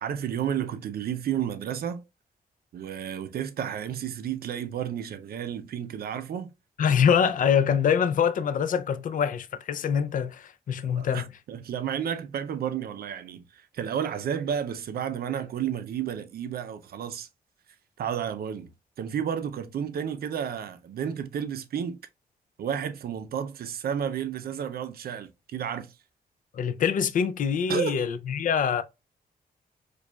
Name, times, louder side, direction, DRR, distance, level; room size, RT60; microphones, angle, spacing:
voice 1, 0.0-2.0 2.7-6.5 10.9-17.3 18.0-18.7 19.0-22.0 22.6-26.0 27.7-28.0, right 8 dB, 75° right, 0.5 m, -32 dB
voice 2, 6.8-11.3 26.5-28.8, left 7 dB, 55° left, 0.4 m, -24 dB
4.8 x 2.3 x 2.2 m
wide cardioid pair, 130°, 16 cm